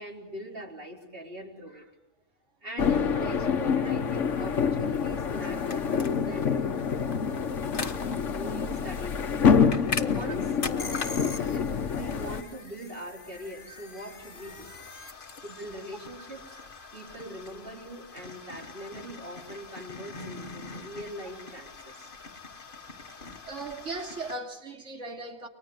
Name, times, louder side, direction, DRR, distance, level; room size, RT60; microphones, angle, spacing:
voice 1, 0.0-1.9 2.6-6.6 6.9-9.3 9.9-14.8 15.4-16.6 16.9-22.1 23.3-23.5, equal, 50° right, 4.3 m, -42 dB
sound 1, 2.8-12.4, left 6 dB, 80° left, 1.5 m, -27 dB
sound 2, 4.8-24.4, left 4 dB, 45° left, 1.5 m, -42 dB
voice 2, 23.1-25.5, right 2 dB, 80° right, 3.0 m, -38 dB
29.5 x 24.0 x 8.0 m
omnidirectional pair, 1.2 m